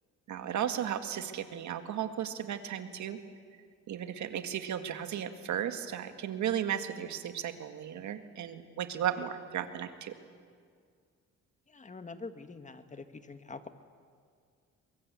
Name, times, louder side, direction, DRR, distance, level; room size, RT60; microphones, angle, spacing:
voice 1, 0.3-3.2 3.9-10.1, right 9 dB, 70° right, 8 dB, 1.9 m, -35 dB
voice 2, 11.7-13.7, left 3 dB, 25° left, 9 dB, 1.7 m, -45 dB
23.0 x 22.5 x 8.3 m, 2.1 s
cardioid pair, 90°, 30 cm